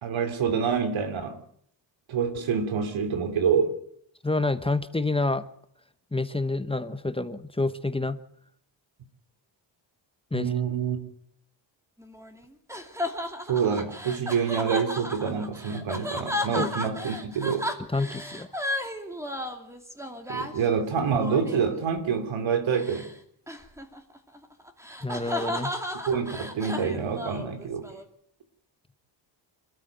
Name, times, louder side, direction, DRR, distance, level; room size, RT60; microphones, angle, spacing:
voice 1, 0.0-1.4 2.1-3.8 10.3-11.0 13.5-17.7 20.3-23.1 26.1-27.9, right 6 dB, 90° right, 8 dB, 3.1 m, -27 dB
voice 2, 4.2-5.4 6.1-8.2 10.3-10.5 16.6-16.7 17.9-18.5 25.0-25.7, left 2 dB, 10° left, 11 dB, 1.0 m, -28 dB
sound 1, 12.0-21.8 22.7-23.1 23.5-28.0, left 1 dB, 5° right, 2.6 m, -34 dB
27.0 x 13.0 x 8.1 m, 0.69 s
wide cardioid pair, 125°, 45 cm